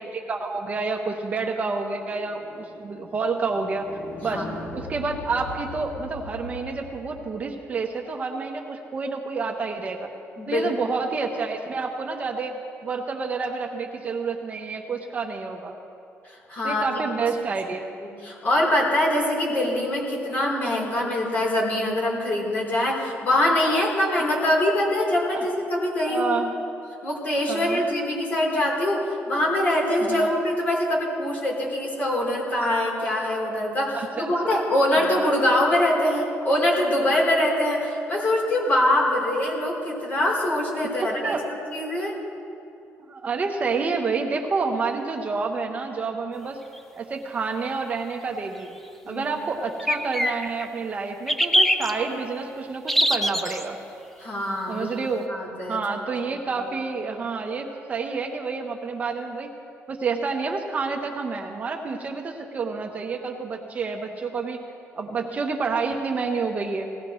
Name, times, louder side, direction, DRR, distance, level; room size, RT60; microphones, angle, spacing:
voice 1, 0.0-4.5 4.7-10.1 10.5-12.5 12.8-15.8 16.6-18.2 25.3-25.5 26.1-26.5 27.5-27.8 30.1-30.4 33.9-34.6 41.0-41.4 43.1-46.6 47.0-48.7 49.1-53.8 54.7-55.3 55.7-59.5 59.9-64.6 64.9-66.9, right 4 dB, 30° right, 2 dB, 0.9 m, -29 dB
sound 1, 1.7-7.3, left 1 dB, 65° left, 2.3 m, -40 dB
voice 2, 10.4-10.7 16.5-17.0 18.2-26.3 27.0-42.2 49.0-49.3 54.2-54.9 55.3-55.8, left 1 dB, 35° left, -3 dB, 3.5 m, -23 dB
sound 2, 46.8-46.9 49.8-50.7 51.3-51.9 52.9-53.6, equal, 5° left, 0.6 m, -21 dB
20.0 x 17.0 x 3.1 m, 2.6 s
cardioid pair, 150°, 5 cm